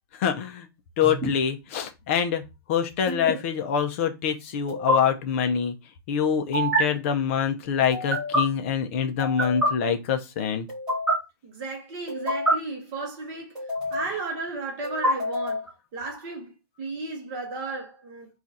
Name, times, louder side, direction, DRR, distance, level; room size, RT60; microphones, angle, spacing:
voice 1, 0.2-0.7 1.0-2.4 2.7-5.7 6.1-10.7, left 7 dB, 30° left, 0.6 m, -25 dB
sound 1, 1.0-1.3 3.1-3.3 4.7-5.0 6.5-6.8 7.9-8.4 9.2-9.7 10.7-11.1 12.1-12.5 13.5-14.1 14.8-15.7, right 1 dB, 5° right, 1.7 m, -26 dB
voice 2, 11.4-18.4, right 3 dB, 25° right, 1.1 m, -34 dB
3.8 x 2.4 x 4.1 m
supercardioid pair, 175°, 13 cm